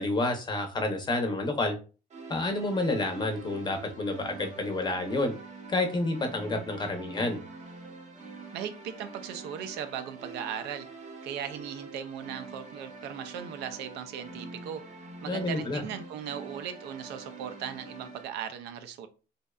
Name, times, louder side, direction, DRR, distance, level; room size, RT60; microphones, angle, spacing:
voice 1, 0.0-1.7 2.3-5.3 5.7-7.4 15.3-15.8, left 2 dB, 25° left, 5 dB, 0.5 m, -29 dB
sound 1, 2.1-18.2, right 3 dB, 45° right, 0.8 m, -45 dB
voice 2, 8.5-10.9 11.2-14.8 15.2-19.1, right 8 dB, 85° right, 9 dB, 0.4 m, -38 dB
2.6 x 2.1 x 2.2 m, 0.34 s
cardioid pair, 110°, 17 cm